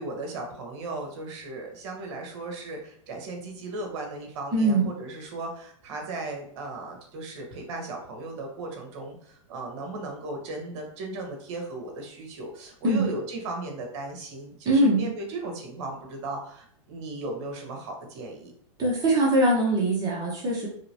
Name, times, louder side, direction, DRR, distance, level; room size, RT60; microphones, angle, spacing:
voice 1, 0.0-18.5, right 2 dB, 55° right, 2 dB, 1.1 m, -36 dB
voice 2, 4.5-4.9 12.8-13.1 14.6-15.1 18.8-20.7, right 1 dB, 20° right, -3 dB, 0.9 m, -22 dB
3.1 x 2.9 x 2.8 m, 0.64 s
hypercardioid pair, 125°, 18 cm